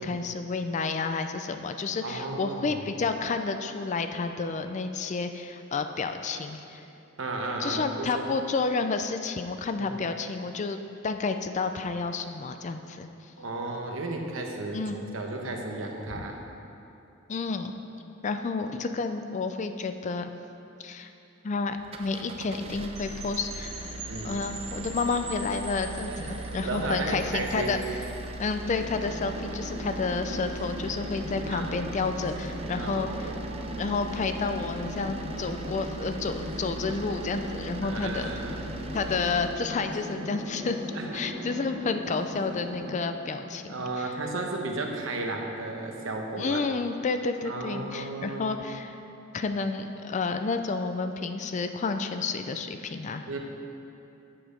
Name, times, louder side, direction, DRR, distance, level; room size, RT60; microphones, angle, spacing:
voice 1, 0.0-6.9 7.6-10.8 11.0-13.3 14.7-15.0 16.1-16.2 17.3-17.7 18.2-20.3 20.8-21.1 21.4-23.8 24.2-27.8 28.4-33.3 33.8-38.3 38.9-40.8 41.1-44.1 46.4-49.0 49.3-53.2, left 4 dB, 35° left, 8 dB, 0.4 m, -30 dB
voice 2, 2.0-2.8 7.2-8.3 9.8-9.9 13.4-16.4 24.1-24.3 26.0-27.8 31.5-31.7 32.8-33.4 37.8-38.6 40.9-41.1 43.7-46.6 47.4-48.6 53.3-53.4, right 2 dB, 65° right, 2 dB, 1.0 m, -34 dB
sound 1, 21.8-39.6, right 3 dB, 30° right, 0.4 m, -40 dB
sound 2, 22.9-28.2, right 3 dB, 85° right, 2.4 m, -43 dB
sound 3, 28.7-43.0, equal, 45° right, 2.1 m, -38 dB
8.5 x 7.6 x 5.1 m, 2.8 s
head